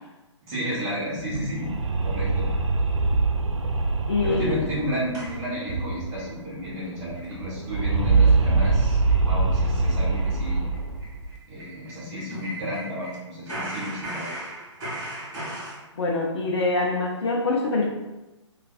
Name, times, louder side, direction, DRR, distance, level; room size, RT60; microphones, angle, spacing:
voice 1, 0.4-1.7 2.0-2.5 4.2-10.6 11.5-14.3, equal, 25° right, -7 dB, 1.1 m, -32 dB
sound 1, 1.1-6.4 6.6-6.7 7.0-11.3, right 3 dB, 80° right, 0.4 m, -24 dB
voice 2, 4.1-4.6 16.0-17.9, left 3 dB, 60° left, -2 dB, 0.6 m, -24 dB
sound 2, 5.1-6.3 6.7-6.8 7.1-7.3 7.6-7.7 8.1-8.3 8.6-8.8 9.0-9.2 9.5-13.2 13.5-15.8, right 1 dB, 40° right, 1.4 m, -37 dB
3.1 x 2.4 x 2.4 m, 1.0 s
figure-of-eight pair, 130°, 16 cm